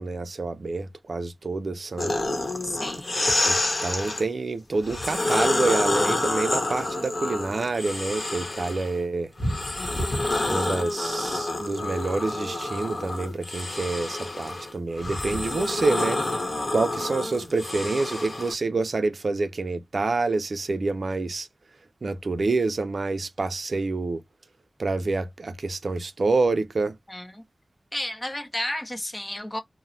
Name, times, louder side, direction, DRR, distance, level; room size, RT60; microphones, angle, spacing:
voice 1, 0.0-2.2 3.4-9.3 10.5-16.2 16.7-21.5 22.0-24.2 24.8-26.9, right 3 dB, 75° right, 0.3 m, -27 dB
sound 1, 2.0-4.2 4.8-8.9 9.4-18.5, left 2 dB, 50° left, 0.9 m, -28 dB
voice 2, 2.6-3.1 27.1-27.4 27.9-29.6, left 1 dB, 25° left, 0.6 m, -32 dB
2.9 x 2.0 x 2.6 m
wide cardioid pair, 80°, 0 cm